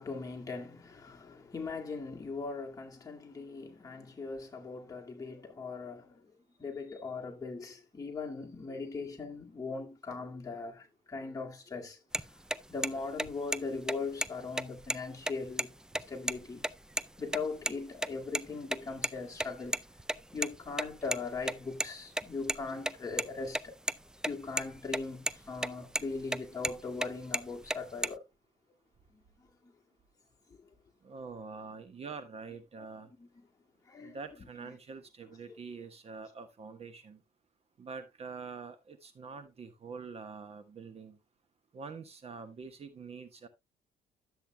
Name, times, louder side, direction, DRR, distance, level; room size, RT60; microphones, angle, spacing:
voice 1, 0.0-6.3 6.6-12.3 12.7-16.7 17.2-19.8 20.3-23.7 24.2-28.2 29.1-29.7 30.5-30.6 32.8-32.9 33.2-33.4 33.9-34.2 34.6-34.7 35.5-35.6, left 4 dB, 20° left, 2.1 m, -40 dB
sound 1, 12.1-12.2 12.5-12.6 12.8-12.9 13.2-13.6 13.9-14.0 14.2-14.3 14.6-15.6 15.9-16.0 16.3-16.4 16.6-17.0 17.3-17.8 18.0-19.1 19.4-21.9 22.2-23.9 24.2-24.3 24.6-25.0 25.3-25.7 26.0-27.1 27.3-28.1, right 1 dB, 5° right, 0.4 m, -32 dB
voice 2, 31.0-33.1 34.0-37.2 37.8-41.2 41.7-43.5, right 5 dB, 35° right, 1.3 m, -45 dB
12.0 x 7.9 x 2.2 m
cardioid pair, 110°, 17 cm